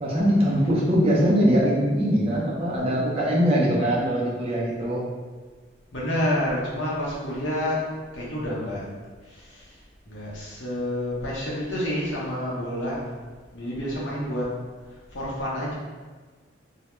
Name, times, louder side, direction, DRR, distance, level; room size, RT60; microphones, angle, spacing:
voice 1, 0.0-5.0, equal, 30° right, -4 dB, 0.4 m, -22 dB
voice 2, 5.9-7.8 8.1-8.8 9.2-9.7 10.1-13.0 13.5-14.5 15.1-15.7, left 1 dB, 75° left, -6 dB, 0.7 m, -28 dB
2.2 x 2.0 x 3.0 m, 1.4 s
head